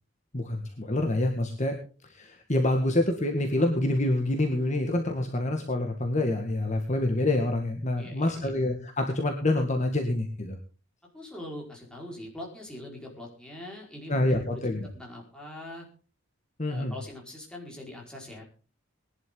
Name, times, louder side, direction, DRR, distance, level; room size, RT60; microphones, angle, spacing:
voice 1, 0.3-10.6 14.1-14.9 16.6-16.9, left 1 dB, 35° left, 3 dB, 1.8 m, -27 dB
voice 2, 8.0-8.6 11.1-15.9 16.7-18.4, left 1 dB, 5° left, -2 dB, 4.9 m, -43 dB
20.5 x 11.5 x 3.9 m, 0.37 s
head